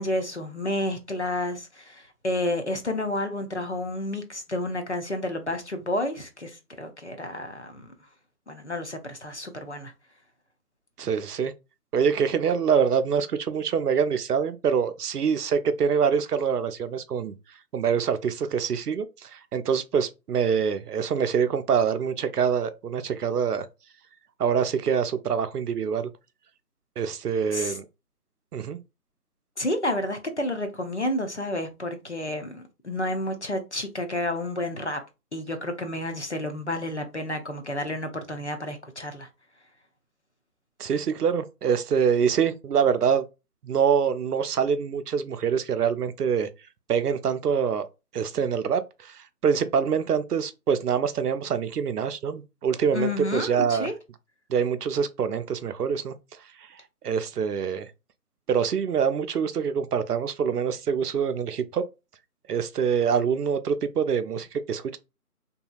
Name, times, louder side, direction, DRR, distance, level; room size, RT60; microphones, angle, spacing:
voice 1, 0.0-7.9 8.5-9.9 27.5-27.8 29.6-35.0 35.3-39.3 52.9-53.9, left 1 dB, 50° left, 0.5 m, -30 dB
voice 2, 11.0-11.5 11.9-17.3 17.7-23.7 24.4-26.1 27.0-27.9 28.5-28.8 40.8-43.3 43.6-46.5 46.9-47.9 48.1-53.9 54.5-56.2 56.6-57.9 58.5-61.8 62.5-65.0, right 7 dB, 80° right, 0.6 m, -25 dB
2.8 x 2.7 x 2.3 m
figure-of-eight pair, 175°, 46 cm